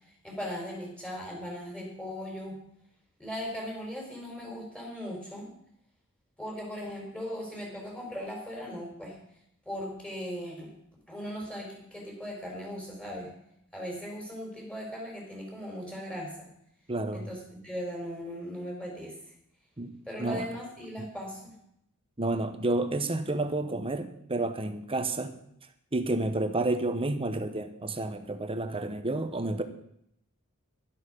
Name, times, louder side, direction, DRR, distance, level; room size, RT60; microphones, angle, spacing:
voice 1, 0.2-2.6 3.2-5.5 6.4-9.2 9.6-10.7 11.1-13.3 13.7-16.5 17.1-19.1 20.1-21.5, equal, 5° left, -2 dB, 5.0 m, -38 dB
voice 2, 16.9-17.3 19.8-19.9 20.2-20.4 21.0-21.1 22.2-25.3 25.9-29.6, right 2 dB, 25° right, 8 dB, 1.2 m, -30 dB
12.0 x 11.5 x 5.4 m, 0.73 s
head